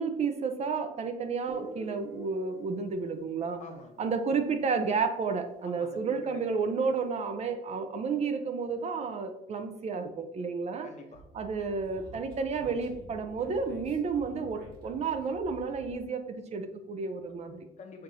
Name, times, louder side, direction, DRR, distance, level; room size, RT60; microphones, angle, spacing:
voice 1, 0.0-3.6 4.0-10.9 11.3-17.6, right 5 dB, 40° right, 7 dB, 0.5 m, -31 dB
Guitar, 1.5-5.0, equal, 15° right, 1.1 m, -50 dB
voice 2, 3.6-4.1 5.6-6.8 10.8-11.2 17.8-18.0, left 4 dB, 45° left, 4 dB, 0.7 m, -47 dB
Speech, 11.1-16.0, right 1 dB, 90° right, 1.2 m, -50 dB
6.4 x 2.5 x 2.7 m, 0.84 s
cardioid pair, 110°, 17 cm